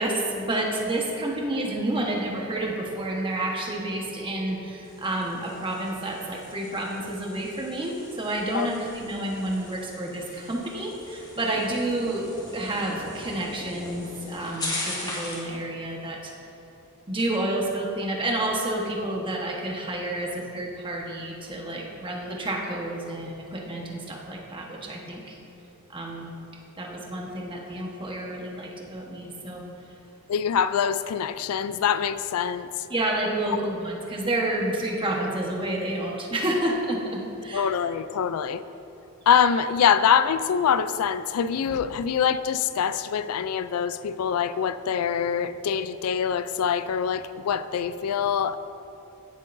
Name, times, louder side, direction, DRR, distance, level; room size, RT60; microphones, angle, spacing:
voice 1, 0.0-12.2 12.5-16.3 17.1-25.4 25.9-26.4 26.8-29.6 32.9-37.7, right 1 dB, 25° right, -1 dB, 1.2 m, -29 dB
sound 1, 4.8-15.5, left 2 dB, 20° left, 1.9 m, -39 dB
voice 2, 30.3-32.7 37.5-38.6 39.3-48.6, left 7 dB, 85° left, 13 dB, 0.4 m, -24 dB
16.5 x 7.5 x 2.6 m, 2.8 s
head